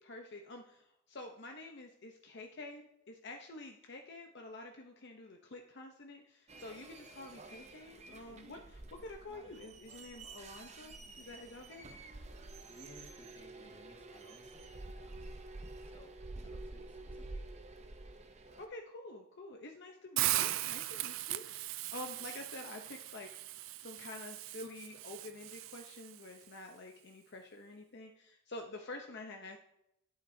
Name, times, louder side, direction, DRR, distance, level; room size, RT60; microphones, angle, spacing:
voice 1, 0.0-11.9 18.6-23.3 23.8-29.6, left 2 dB, 55° left, 3 dB, 0.7 m, -48 dB
sound 1, 6.5-18.7, right 2 dB, 30° right, 0.6 m, -49 dB
voice 2, 12.7-14.6 14.9-15.4 15.9-16.1 16.4-17.4, left 1 dB, 25° left, 1 dB, 1.5 m, -58 dB
Hiss, 20.2-26.2, right 15 dB, 70° right, 0.3 m, -38 dB
10.0 x 8.8 x 2.7 m, 0.79 s
head